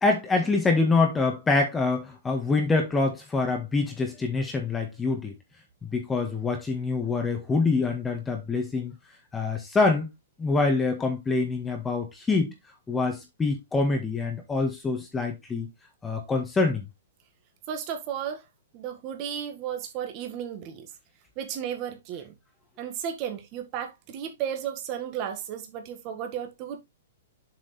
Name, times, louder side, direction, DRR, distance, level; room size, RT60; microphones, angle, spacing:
voice 1, 0.0-5.3 5.8-9.0 9.3-10.1 10.4-12.5 12.9-15.7 16.0-16.8, left 3 dB, 10° left, 1.7 m, -25 dB
voice 2, 17.7-18.4 18.7-20.9 21.4-22.3 22.8-26.8, right 9 dB, 35° right, 1.9 m, -34 dB
7.7 x 5.1 x 3.3 m
hypercardioid pair, 145°, 0 cm